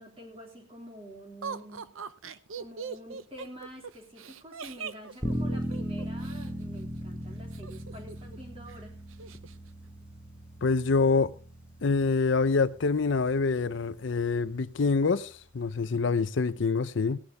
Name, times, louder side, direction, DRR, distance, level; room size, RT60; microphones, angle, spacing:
voice 1, 0.0-1.9 2.6-9.0, equal, 30° right, 3.5 m, -47 dB
Laughter, 1.4-6.5 7.5-8.4 8.7-8.8 9.1-9.6, right 6 dB, 80° right, 0.7 m, -40 dB
sound 1, 5.2-16.0, equal, 5° right, 1.4 m, -39 dB
voice 2, 10.6-11.3 11.8-17.2, left 4 dB, 60° left, 0.5 m, -26 dB
17.0 x 11.0 x 3.4 m
head